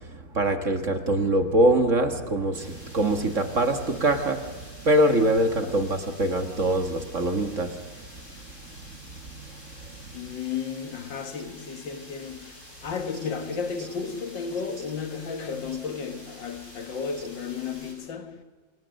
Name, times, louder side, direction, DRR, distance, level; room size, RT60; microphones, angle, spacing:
voice 1, 0.1-4.6 4.8-7.7, right 1 dB, 40° right, 1.8 m, -23 dB
sound 1, 2.5-17.9, right 1 dB, 35° left, 8.0 m, -47 dB
voice 2, 10.1-18.4, left 6 dB, 70° left, 2.2 m, -33 dB
29.0 x 26.0 x 6.5 m
omnidirectional pair, 2.1 m